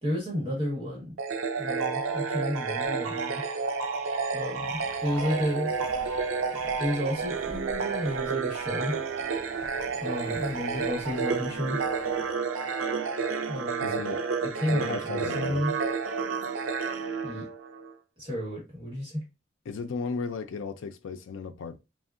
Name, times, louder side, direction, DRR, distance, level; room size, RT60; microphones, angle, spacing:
voice 1, 0.0-1.1 1.6-3.4 4.3-5.7 6.8-8.9 10.0-11.8 13.5-14.0 14.4-15.7 17.2-17.5 18.2-19.2, equal, 25° right, 1.1 m, -32 dB
sound 1, 1.2-17.9, right 5 dB, 85° right, 0.5 m, -30 dB
Walk footsteps, 4.7-12.3, right 1 dB, 15° left, 0.7 m, -48 dB
voice 2, 13.8-14.2 14.7-15.6 19.7-21.8, left 4 dB, 75° left, 0.4 m, -35 dB
3.5 x 2.1 x 2.4 m
head